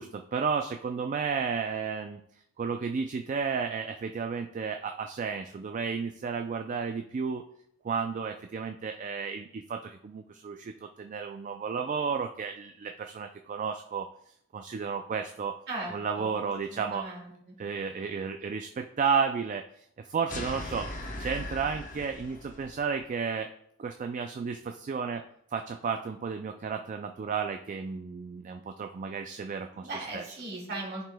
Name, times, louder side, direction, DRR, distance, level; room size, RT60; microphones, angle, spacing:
voice 1, 0.0-2.2 2.6-7.5 7.8-14.1 14.5-15.6 15.9-17.0 17.6-20.9 21.2-23.5 23.8-25.2 25.5-29.9 30.1-30.2, right 6 dB, 35° right, 6 dB, 0.3 m, -32 dB
voice 2, 15.7-16.3 16.7-17.5 29.7-31.0, right 2 dB, 55° right, -3 dB, 2.0 m, -38 dB
sound 1, 20.3-22.9, left 1 dB, 40° left, 0.9 m, -39 dB
11.0 x 5.0 x 2.2 m, 0.70 s
head